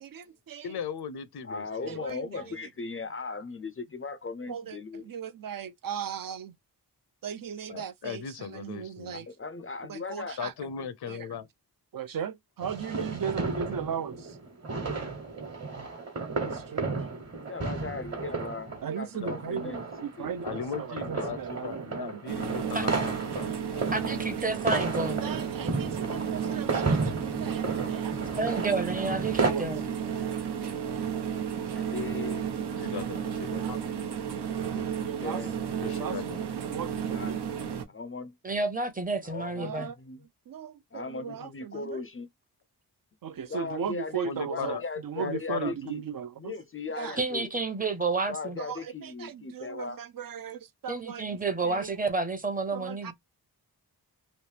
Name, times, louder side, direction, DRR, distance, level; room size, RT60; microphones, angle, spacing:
voice 1, 0.0-0.7 1.9-2.6 4.5-6.5 7.2-9.3 9.9-10.5 10.8-11.3 11.9-14.4 16.4-17.0 18.8-19.8 20.0-20.5 20.8-22.2 25.1-28.4 29.4-29.7 31.6-31.8 32.8-33.1 33.6-33.8 35.1-35.4 35.8-36.1 36.5-37.4 39.6-40.0 40.5-42.0 43.2-46.5 47.0-47.2 48.6-51.4 51.6-51.9 52.7-53.1, right 7 dB, 60° right, 0.5 m, -37 dB
voice 2, 0.6-2.0 2.4-2.5 7.7-9.2 10.4-11.5 19.1-19.6 20.4-24.4 32.8-33.8 35.8-36.4 44.2-44.8 45.2-45.7, left 7 dB, 75° left, 0.6 m, -38 dB
voice 3, 1.4-5.1 9.1-10.4 17.3-20.3 31.8-32.5 34.6-35.5 37.1-37.3 37.9-38.3 39.2-40.2 40.9-42.3 43.4-46.0 46.4-47.5 48.3-50.0, left 4 dB, 35° left, 0.4 m, -38 dB
sound 1, 12.6-29.5, right 3 dB, 40° right, 1.3 m, -33 dB
sound 2, 22.3-37.8, right 8 dB, 85° right, 0.9 m, -33 dB
voice 4, 23.9-25.3 28.3-29.9 38.4-39.9 47.2-48.6 50.9-53.1, right 3 dB, 20° right, 0.7 m, -30 dB
3.1 x 2.9 x 3.2 m
wide cardioid pair, 175°, 39 cm